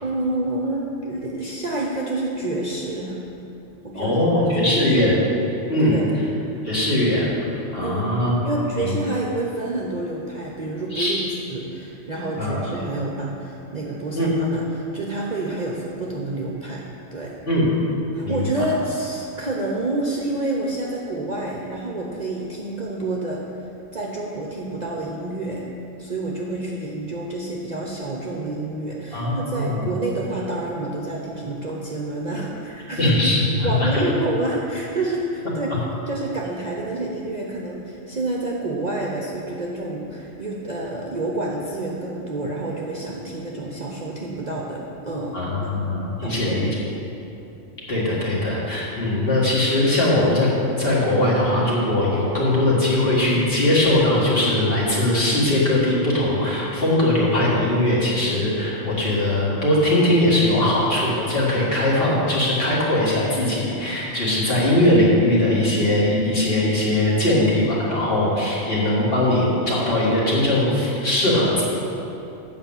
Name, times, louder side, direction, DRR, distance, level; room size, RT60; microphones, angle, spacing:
voice 1, 0.0-3.2 3.8-5.1 5.8-6.1 7.8-16.9 17.1-17.3 18.1-25.7 26.0-33.1 33.6-35.7 36.1-45.8 46.2-46.8, right 2 dB, 40° right, -3 dB, 0.7 m, -28 dB
voice 2, 3.9-5.2 5.7-6.0 6.6-7.3 7.7-8.3 8.8-9.0 10.9-11.2 12.4-12.6 14.1-14.3 17.5-17.6 18.2-18.5 29.1-29.8 33.0-34.0 45.3-46.7 47.9-50.5 50.8-71.6, left 1 dB, 45° left, -6 dB, 2.1 m, -20 dB
8.0 x 5.4 x 7.2 m, 2.9 s
omnidirectional pair, 1.4 m